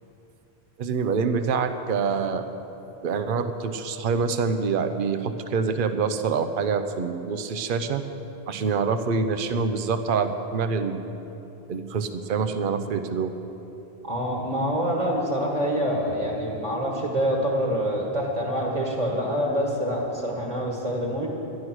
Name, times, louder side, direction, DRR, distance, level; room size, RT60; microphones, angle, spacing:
voice 1, 0.8-2.4 3.0-8.0 8.5-11.0 11.7-13.3, right 5 dB, 60° right, 9 dB, 0.8 m, -26 dB
voice 2, 14.0-21.3, equal, 40° right, -2 dB, 1.7 m, -26 dB
11.5 x 11.5 x 6.1 m, 3.0 s
omnidirectional pair, 1.1 m